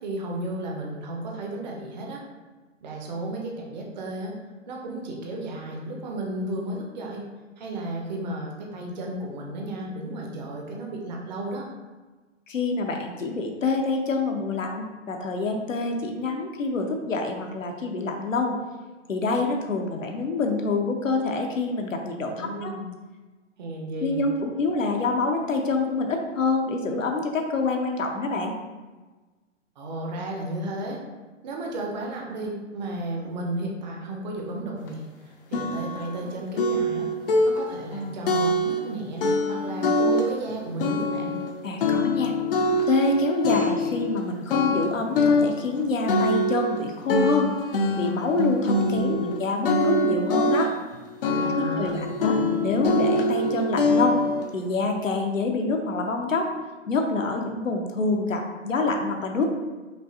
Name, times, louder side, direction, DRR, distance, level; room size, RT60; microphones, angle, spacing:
voice 1, 0.0-2.2 2.8-4.4 4.7-7.3 7.6-11.7 22.4-22.9 23.6-24.2 29.8-31.0 31.4-37.1 37.4-41.4 49.0-49.3 51.3-52.5, right 1 dB, 35° right, 0 dB, 0.8 m, -33 dB
voice 2, 12.5-18.6 19.1-22.7 24.0-28.5 41.6-42.3 42.9-47.5 48.0-50.7 51.5-54.2 54.5-56.5 56.9-59.5, left 3 dB, 85° left, 3 dB, 0.8 m, -26 dB
sound 1, 34.9-35.0 35.5-36.3 36.6-38.9 39.2-40.5 40.8-44.2 44.5-49.4 49.6-50.9 51.2-54.5, left 1 dB, 45° left, 0.5 m, -24 dB
5.3 x 2.6 x 2.7 m, 1.3 s
figure-of-eight pair, 130°, 38 cm